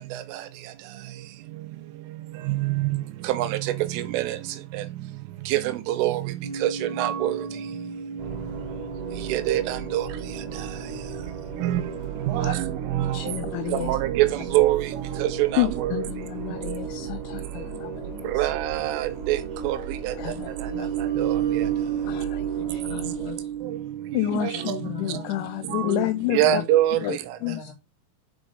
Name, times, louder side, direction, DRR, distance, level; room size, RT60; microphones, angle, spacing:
voice 1, 3.3-4.4 5.5-5.6 5.9-6.2 6.6-6.7 7.0-7.3 9.3-10.1 11.6-11.8 12.3-13.2 13.7-14.9 15.2-16.0 18.3-19.4 19.6-19.8 20.0-20.1 21.2-21.4 24.3-24.8 25.7-25.9 26.3-27.2, right 14 dB, 80° right, 3.1 m, -24 dB
sound 1, 6.4-13.9 20.0-26.3, right 9 dB, 35° left, 0.6 m, -34 dB
sound 2, 8.2-23.8, right 7 dB, 60° right, 2.2 m, -35 dB
voice 2, 13.1-14.0 15.6-18.5 20.2-20.9 22.0-22.5 22.9-23.1 24.1-26.6 27.0-27.7, left 16 dB, 90° left, 2.6 m, -30 dB
voice 3, 22.3-23.5 24.5-25.5 25.8-26.0 26.5-26.6 27.4-27.7, left 2 dB, 60° left, 1.7 m, -36 dB
7.3 x 5.2 x 5.2 m
omnidirectional pair, 5.9 m